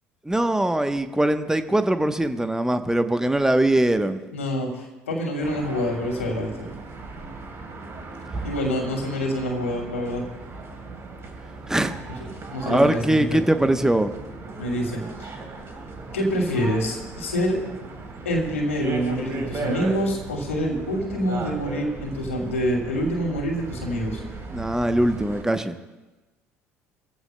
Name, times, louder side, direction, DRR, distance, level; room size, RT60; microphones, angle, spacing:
voice 1, 0.2-4.2 11.7-11.9 12.6-14.1 24.5-25.8, right 1 dB, 5° right, 9 dB, 0.9 m, -21 dB
voice 2, 4.3-6.7 8.4-10.2 12.5-13.4 14.6-15.3 16.1-17.6 18.2-24.2, equal, 80° left, 1 dB, 2.8 m, -26 dB
sound 1, 5.4-25.4, right 3 dB, 40° right, 3.7 m, -37 dB
24.5 x 15.5 x 2.2 m, 1.1 s
figure-of-eight pair, 60°, 7 cm